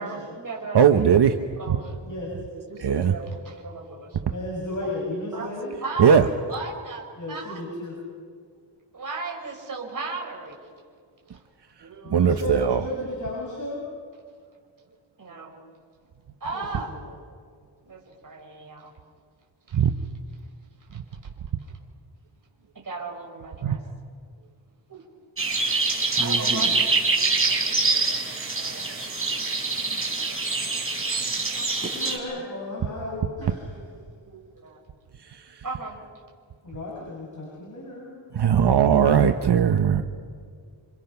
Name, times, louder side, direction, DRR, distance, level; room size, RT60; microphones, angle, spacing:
voice 1, 0.0-1.1 1.6-2.0 2.5-4.4 4.8-4.9 5.3-5.5 5.8-7.6 8.9-10.6 11.3-11.4 11.8-12.4 15.2-15.6 16.4-16.9 17.8-18.9 19.7-19.8 20.9-21.0 21.7-21.8 22.7-23.8 24.9-25.0 26.2-29.4 30.1-30.8 31.5-32.0 33.4-33.9 34.2-34.8 35.6-36.0, right 3 dB, 45° right, 0 dB, 4.6 m, -37 dB
voice 2, 0.7-1.4 1.7-1.8 2.8-3.1 6.0-6.2 12.1-12.8 19.7-19.9 23.6-23.8 35.2-35.6 38.3-40.0, right 7 dB, 60° right, 7 dB, 1.1 m, -19 dB
voice 3, 4.3-5.7 7.2-8.0 12.0-13.9 16.5-16.6 17.0-17.1 31.9-33.8 36.6-38.4, left 1 dB, 40° left, -4 dB, 7.1 m, -34 dB
sound 1, 25.4-32.2, right 3 dB, 30° right, 5.1 m, -25 dB
28.5 x 27.0 x 5.9 m, 2.1 s
wide cardioid pair, 100°, 45 cm